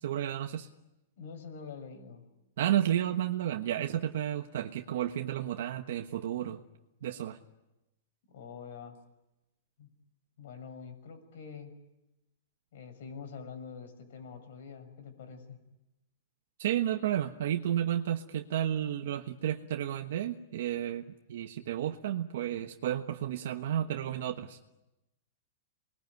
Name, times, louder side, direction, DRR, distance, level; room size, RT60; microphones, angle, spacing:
voice 1, 0.0-0.7 2.6-6.6 7.0-7.4 16.6-21.0 21.3-24.6, right 11 dB, 60° right, 5 dB, 1.3 m, -32 dB
voice 2, 1.2-2.2 8.3-9.0 9.8-9.9 10.4-11.7 12.7-15.6, left 6 dB, 55° left, 8 dB, 6.2 m, -45 dB
28.0 x 21.5 x 9.5 m, 0.96 s
supercardioid pair, 170°, 0 cm